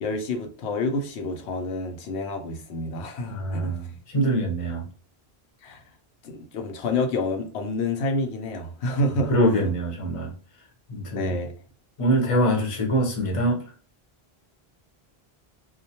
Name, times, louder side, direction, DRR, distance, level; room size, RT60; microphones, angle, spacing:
voice 1, 0.0-3.7 5.6-5.8 6.2-9.7 11.1-11.5, left 2 dB, 85° left, 0.9 m, -28 dB
voice 2, 3.3-4.9 9.3-10.3 10.9-11.3 12.0-13.6, right 1 dB, 35° left, 0.7 m, -24 dB
2.3 x 2.1 x 2.7 m
omnidirectional pair, 1.1 m